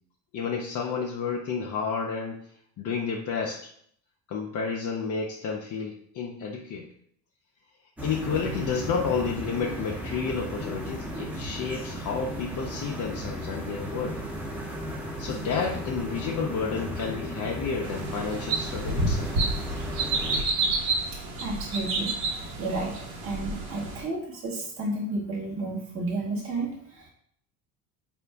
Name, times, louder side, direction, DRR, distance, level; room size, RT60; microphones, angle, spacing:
voice 1, 0.3-2.4 2.8-3.7 4.3-6.9 8.0-14.2 15.2-19.3, left 5 dB, 40° left, -1 dB, 0.6 m, -31 dB
sound 1, 8.0-20.4, equal, 5° right, 0.9 m, -35 dB
sound 2, 17.8-24.0, right 2 dB, 60° right, 1.1 m, -29 dB
voice 2, 21.1-22.9 23.2-27.1, right 2 dB, 25° right, -4 dB, 1.1 m, -32 dB
4.3 x 2.6 x 3.4 m, 0.66 s
hypercardioid pair, 75°, 49 cm